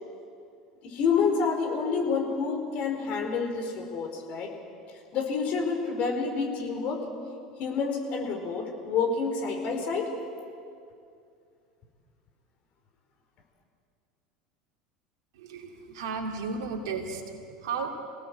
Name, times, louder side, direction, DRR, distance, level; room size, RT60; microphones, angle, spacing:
voice 1, 0.8-4.5 5.1-7.0 7.6-10.1, left 5 dB, 50° left, 2 dB, 4.7 m, -28 dB
voice 2, 15.4-17.9, right 5 dB, 65° right, 3 dB, 2.8 m, -34 dB
27.0 x 18.0 x 7.9 m, 2.4 s
figure-of-eight pair, 75°, 3 cm